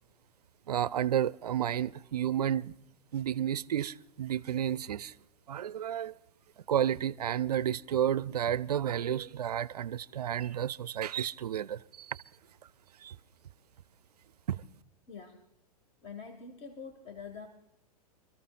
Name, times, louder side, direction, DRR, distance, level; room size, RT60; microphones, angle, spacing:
voice 1, 0.7-2.7 3.1-5.1 5.5-6.2 6.7-12.2 13.0-13.2 14.5-14.6, right 10 dB, 75° right, 0.5 m, -31 dB
voice 2, 15.1-15.4 16.0-17.5, left 5 dB, 30° left, 1.5 m, -45 dB
29.5 x 14.0 x 2.3 m
figure-of-eight pair, 100°, 20 cm